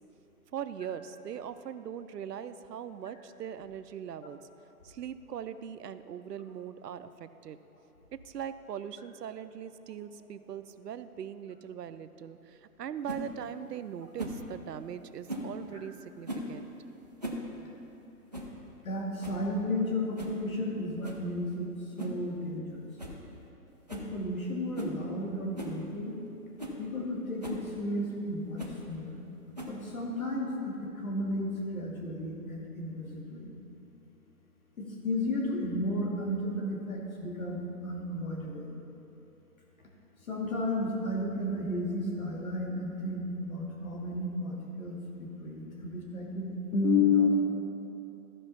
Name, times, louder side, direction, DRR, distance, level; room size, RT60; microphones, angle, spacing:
voice 1, 0.5-4.4 4.8-7.6 8.1-16.7, right 9 dB, 85° right, 12 dB, 0.6 m, -41 dB
sound 1, 13.1-13.2 14.2-14.4 15.3-15.5 16.2-16.5 17.0-17.5 17.7-17.8 18.3-18.6 18.9-19.0 19.2-19.5 20.2-20.4 21.0-21.3 22.0-22.2 22.6-22.7 23.0-23.2 23.5-23.6 23.9-24.1 24.7-25.0 25.6-25.8 26.3-26.4 26.6-26.8 27.4-27.6 28.6-28.8 29.6-29.9, equal, 30° right, 0.5 m, -38 dB
voice 2, 18.8-21.7 22.0-22.9 23.9-26.2 26.8-29.2 29.7-33.5 34.8-38.8 40.3-47.3, left 2 dB, 60° left, -2 dB, 2.2 m, -32 dB
14.0 x 5.4 x 4.1 m, 3.0 s
hypercardioid pair, 170°, 47 cm